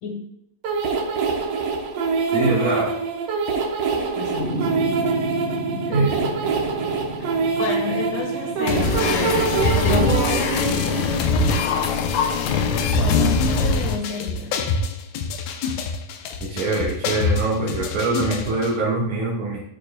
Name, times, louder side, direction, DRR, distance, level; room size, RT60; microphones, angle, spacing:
sound 1, 0.6-11.2, right 5 dB, 90° right, 1.3 m, -24 dB
voice 1, 2.3-3.0 5.9-6.2 16.4-19.6, right 3 dB, 65° right, -7 dB, 2.9 m, -23 dB
voice 2, 4.0-5.0 5.7-6.2 7.2-9.5 9.7-10.5 10.8-14.5, left 4 dB, 70° left, 1 dB, 2.6 m, -31 dB
sound 2, 4.4-10.8, right 2 dB, 40° right, 2.8 m, -33 dB
sound 3, 8.7-18.7, left 4 dB, 85° left, 1.6 m, -23 dB
12.5 x 4.5 x 2.2 m, 0.74 s
omnidirectional pair, 3.9 m